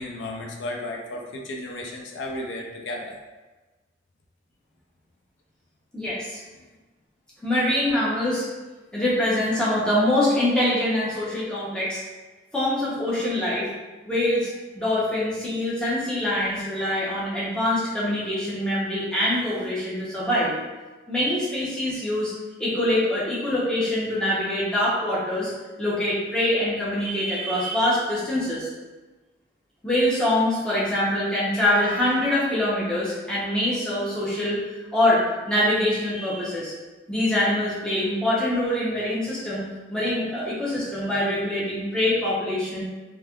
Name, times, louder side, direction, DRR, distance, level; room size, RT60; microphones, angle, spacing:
voice 1, 0.0-3.2, left 1 dB, 90° left, 1 dB, 0.4 m, -34 dB
voice 2, 5.9-6.4 7.4-8.4 8.9-12.0 12.5-13.7 14.1-20.6 21.1-22.3 22.6-25.5 25.8-28.7 29.8-34.6 34.9-36.7 37.1-42.8, left 1 dB, 5° left, -9 dB, 0.7 m, -24 dB
3.2 x 2.5 x 2.3 m, 1.2 s
head